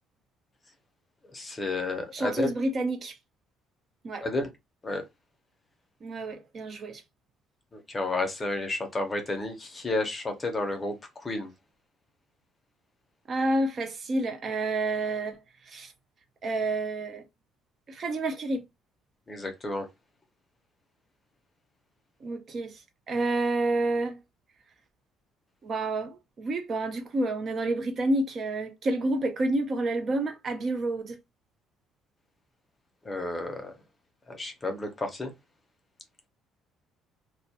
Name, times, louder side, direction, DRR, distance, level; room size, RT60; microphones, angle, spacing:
voice 1, 1.3-2.5 4.2-4.5 4.8-5.0 7.7-11.5 19.3-19.9 33.0-33.8 34.3-35.3, left 2 dB, 20° left, 0.6 m, -31 dB
voice 2, 2.1-3.2 4.0-4.3 6.0-7.0 13.3-15.9 16.4-17.3 17.9-18.6 22.2-22.8 23.1-24.2 25.6-31.2, right 2 dB, 35° right, 0.4 m, -29 dB
2.2 x 2.1 x 2.7 m
cardioid pair, 150°, 0 cm